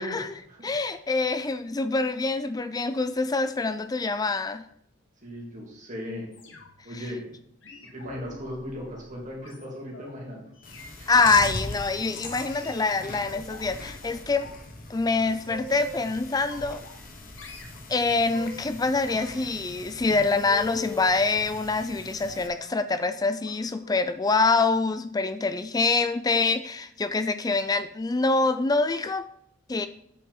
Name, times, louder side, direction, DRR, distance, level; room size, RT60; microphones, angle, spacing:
voice 1, 0.0-0.3 0.6-4.6 11.1-14.5 14.9-16.8 17.9-29.3 29.7-29.9, left 3 dB, 20° left, 11 dB, 0.4 m, -25 dB
voice 2, 5.2-6.3 6.8-7.3 7.9-10.5 11.0-11.1, equal, 40° right, -3 dB, 2.9 m, -37 dB
sound 1, 6.3-6.9 7.6-10.1 10.6-10.9 11.6-11.9 12.5-13.6 14.0-14.6 14.9-16.1 16.5-17.1 17.4-18.7 19.0-21.1 22.3-22.7 23.4-23.6 23.8-24.1 24.4-24.6 24.9-25.0, left 4 dB, 65° left, 1.4 m, -44 dB
Chewing mastication, 10.6-22.5, left 2 dB, 45° left, 1.3 m, -41 dB
8.5 x 6.6 x 3.8 m, 0.70 s
head